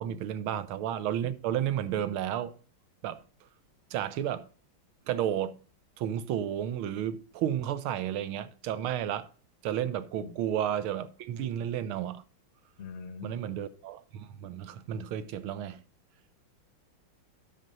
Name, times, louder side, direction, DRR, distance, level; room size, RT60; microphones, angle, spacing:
voice 1, 0.0-2.5 3.0-3.2 3.9-4.5 5.1-5.6 6.0-9.3 9.6-12.2 13.2-15.8, right 10 dB, 85° right, 1.6 m, -32 dB
voice 2, 12.8-13.5, left 5 dB, 40° left, 1.0 m, -43 dB
9.4 x 6.6 x 5.4 m
omnidirectional pair, 2.3 m